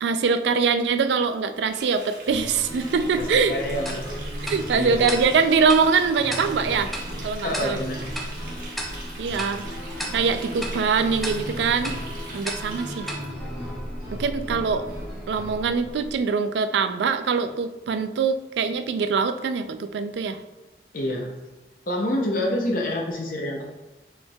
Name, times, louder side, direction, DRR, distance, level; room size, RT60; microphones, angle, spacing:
voice 1, 0.0-3.6 4.4-6.9 7.2-7.8 9.2-9.7 10.1-12.0 12.3-13.2 14.2-14.9 15.3-20.4, right 5 dB, 80° right, 10 dB, 0.3 m, -23 dB
Water tap faucet, 1.7-13.2, right 2 dB, 50° right, 1.1 m, -42 dB
sound 1, 2.2-16.2, equal, 15° right, 1.5 m, -35 dB
voice 2, 3.2-4.0 4.8-5.1 7.4-8.1 20.9-21.3 21.9-23.6, left 1 dB, 50° left, 0 dB, 0.6 m, -27 dB
Tick-tock, 3.9-14.3, equal, ahead, 0.4 m, -38 dB
6.2 x 3.3 x 2.3 m, 1.0 s
head